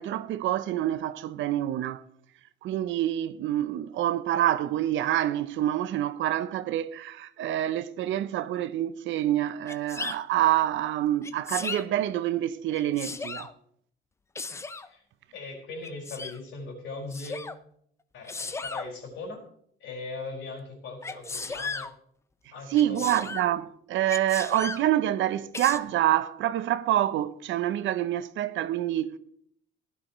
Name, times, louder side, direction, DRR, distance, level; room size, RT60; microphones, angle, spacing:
voice 1, 0.0-2.0 2.6-13.5 22.7-29.2, right 12 dB, 70° right, 0.7 m, -27 dB
Sneeze, 9.7-10.2 11.2-11.8 12.7-13.5 14.4-14.9 15.8-16.4 17.1-17.6 18.3-18.9 21.0-21.9 22.7-23.5 24.1-24.9 25.5-25.8, left 4 dB, 15° left, 0.4 m, -36 dB
voice 2, 15.3-17.5 18.1-19.4 19.8-21.9 22.5-23.1, left 3 dB, 70° left, 4.8 m, -39 dB
17.0 x 11.5 x 3.1 m
cardioid pair, 165°, 21 cm